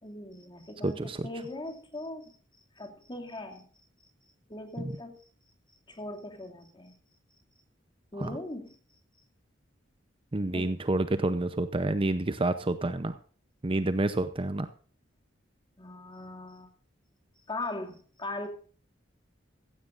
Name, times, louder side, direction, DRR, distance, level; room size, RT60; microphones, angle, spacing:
voice 1, 0.0-2.4 2.7-3.7 4.5-5.2 5.9-6.9 8.1-8.8 10.5-10.7 15.8-16.7 17.5-18.5, left 2 dB, 25° left, 4 dB, 2.5 m, -40 dB
voice 2, 0.8-1.3 8.2-8.3 10.3-13.2 13.6-14.7, right 2 dB, 30° right, 11 dB, 0.7 m, -28 dB
15.5 x 15.0 x 2.6 m, 0.42 s
head